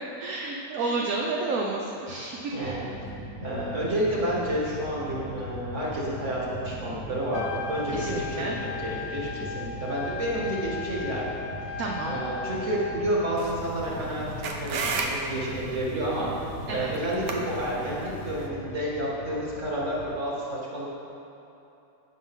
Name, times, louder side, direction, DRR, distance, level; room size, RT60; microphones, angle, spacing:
voice 1, 0.2-2.7 7.9-8.6 11.8-12.2 16.7-16.9, right 3 dB, 60° right, -2 dB, 1.1 m, -31 dB
voice 2, 2.5-2.9 3.4-11.3 11.7-11.8 12.1-16.4 16.7-20.9, right 1 dB, 45° right, -5 dB, 2.2 m, -30 dB
sound 1, 2.6-20.2, left 1 dB, 45° left, 1.4 m, -40 dB
Trumpet, 7.2-13.0, left 5 dB, 80° left, 0.7 m, -37 dB
sound 2, 13.4-18.5, right 4 dB, 80° right, 1.5 m, -35 dB
16.0 x 5.9 x 3.7 m, 2.9 s
omnidirectional pair, 1.8 m